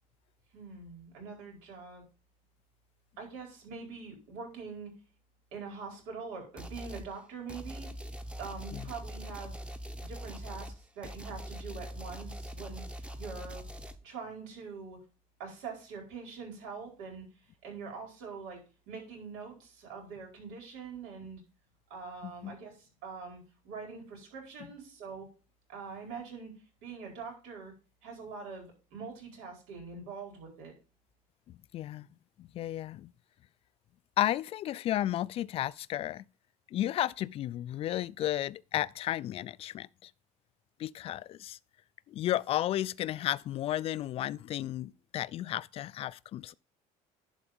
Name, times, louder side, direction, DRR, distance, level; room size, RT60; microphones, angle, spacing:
voice 1, 0.5-2.0 3.2-4.9 5.5-7.9 8.4-9.5 10.1-13.6 14.0-15.0 15.4-18.6 18.9-21.4 21.9-25.3 25.7-26.5 26.8-27.7 28.0-30.7, right 5 dB, 90° right, 4.7 m, -44 dB
sound 1, 6.6-7.1 7.5-14.0, equal, 5° right, 0.8 m, -42 dB
voice 2, 22.2-22.5 31.7-32.1 32.4-33.1 34.2-36.2 36.7-40.1 40.8-41.6 42.1-46.5, left 13 dB, 40° left, 0.3 m, -33 dB
11.0 x 4.7 x 5.2 m
cardioid pair, 135°, 15 cm